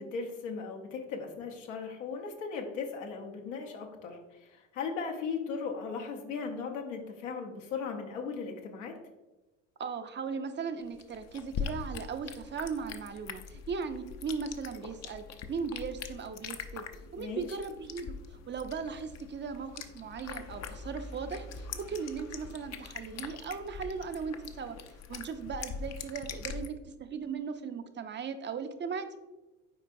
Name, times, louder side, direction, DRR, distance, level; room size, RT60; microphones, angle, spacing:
voice 1, 0.0-9.0 17.2-17.6, left 5 dB, 80° left, 2 dB, 1.1 m, -37 dB
voice 2, 9.8-16.9 17.1-24.8 25.1-29.2, right 5 dB, 30° right, 8 dB, 0.6 m, -38 dB
sound 1, 10.8-26.7, left 6 dB, 45° left, 0.6 m, -43 dB
8.4 x 4.5 x 2.6 m, 1.1 s
hypercardioid pair, 70°, 37 cm